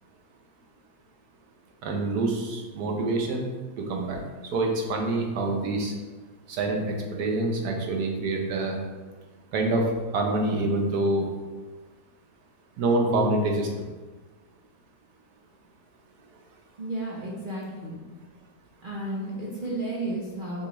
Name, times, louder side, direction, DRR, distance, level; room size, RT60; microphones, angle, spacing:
voice 1, 1.8-3.5 3.8-4.2 4.5-5.9 6.5-8.8 9.5-9.8 10.1-11.3 12.8-13.7, right 2 dB, 85° right, 1 dB, 1.3 m, -26 dB
voice 2, 16.8-18.0 18.8-20.7, right 1 dB, 45° right, -5 dB, 0.7 m, -33 dB
6.5 x 2.4 x 3.0 m, 1.3 s
omnidirectional pair, 1.6 m